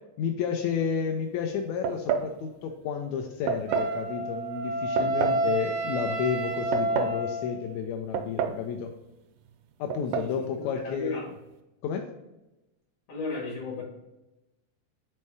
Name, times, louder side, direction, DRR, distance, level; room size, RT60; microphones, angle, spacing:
voice 1, 0.2-8.9 9.8-11.2 11.8-12.1, left 7 dB, 80° left, 3 dB, 1.7 m, -31 dB
sound 1, 1.8-2.3 3.5-3.9 5.0-5.4 6.5-7.2 8.1-8.7 8.9-9.0 9.9-10.3, right 7 dB, 90° right, 2.2 m, -29 dB
Wind instrument woodwind instrument, 3.7-7.7, right 1 dB, 45° right, 2.8 m, -29 dB
voice 2, 5.0-5.4 10.2-11.3 13.1-13.8, left 3 dB, 55° left, -3 dB, 2.9 m, -36 dB
5.6 x 4.3 x 4.8 m, 0.95 s
omnidirectional pair, 3.7 m